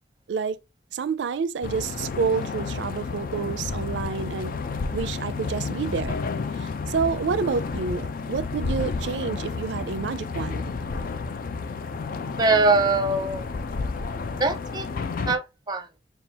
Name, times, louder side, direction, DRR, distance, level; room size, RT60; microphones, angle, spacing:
voice 1, 0.9-4.6 4.9-6.2 6.6-10.6, right 5 dB, 85° right, 0.4 m, -28 dB
sound 1, 1.6-15.4, left 4 dB, 55° left, 0.4 m, -31 dB
voice 2, 12.4-13.4 14.4-14.9 15.3-15.9, right 3 dB, 25° right, 0.6 m, -22 dB
5.4 x 2.3 x 2.8 m
head